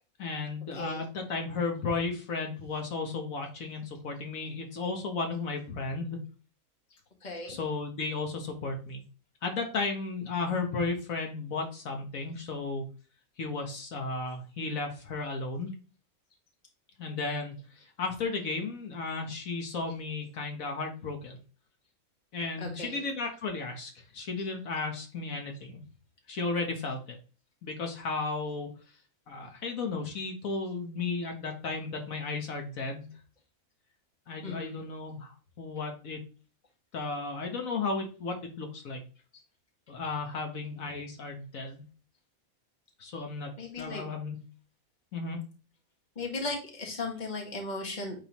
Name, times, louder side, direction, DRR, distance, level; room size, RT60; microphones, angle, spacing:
voice 1, 0.2-6.2 7.5-9.0 9.4-12.8 13.4-15.7 17.0-21.4 22.3-25.8 26.3-27.0 27.6-28.7 29.3-33.1 34.3-36.2 36.9-39.0 39.9-41.8 43.0-43.5 43.8-44.4 45.1-45.4, left 3 dB, 70° left, 3 dB, 1.5 m, -34 dB
voice 2, 0.7-1.0 7.2-7.6 22.6-23.0 34.4-34.8 43.6-44.0 46.1-48.1, left 3 dB, 30° left, 1 dB, 1.5 m, -36 dB
8.8 x 3.7 x 3.0 m, 0.36 s
omnidirectional pair, 1.5 m